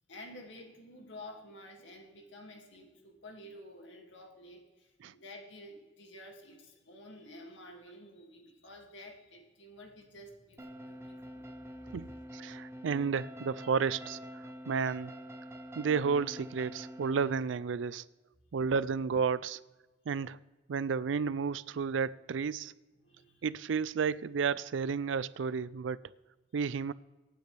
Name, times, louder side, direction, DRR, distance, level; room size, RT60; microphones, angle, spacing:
voice 1, 0.1-11.8 23.0-23.5, left 1 dB, 85° left, 2.4 m, -51 dB
sound 1, 10.6-17.4, equal, 15° right, 1.1 m, -46 dB
voice 2, 11.9-15.1 15.8-18.1 18.5-19.6 20.1-20.4 20.7-22.7 23.4-26.0 26.5-26.9, right 5 dB, 90° right, 0.4 m, -32 dB
25.5 x 9.1 x 3.4 m
head